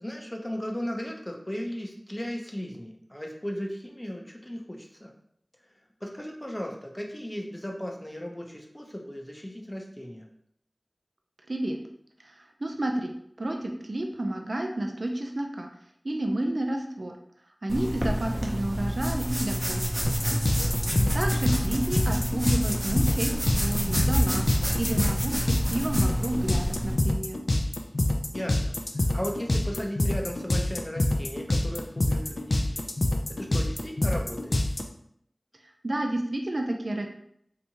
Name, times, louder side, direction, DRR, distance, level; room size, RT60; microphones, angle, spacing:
voice 1, 0.0-5.1 6.0-10.3 20.6-21.1 28.3-32.9 33.3-34.6, equal, 20° left, 1 dB, 0.6 m, -36 dB
voice 2, 11.5-11.8 12.4-13.1 13.4-15.7 16.0-17.2 17.6-20.1 21.1-24.5 24.8-27.4 35.8-37.1, right 1 dB, 70° right, 3 dB, 0.4 m, -30 dB
sound 1, 17.7-26.9, equal, 25° right, 0.7 m, -28 dB
sound 2, 20.0-34.8, left 1 dB, 75° left, 0.4 m, -26 dB
3.4 x 2.8 x 2.8 m, 0.70 s
wide cardioid pair, 45°, 0 cm